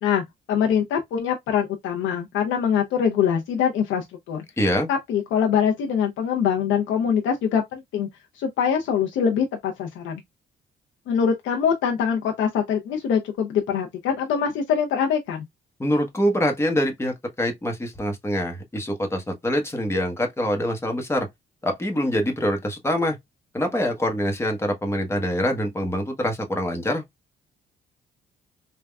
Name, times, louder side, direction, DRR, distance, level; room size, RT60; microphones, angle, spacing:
voice 1, 0.0-4.4 4.9-8.1 8.3-10.2 11.1-15.4, left 7 dB, 80° left, 0.5 m, -23 dB
voice 2, 4.6-4.9 15.8-21.3 21.6-23.2 23.5-27.0, equal, 15° left, 0.9 m, -25 dB
3.4 x 2.2 x 2.2 m
cardioid pair, 90°, 20 cm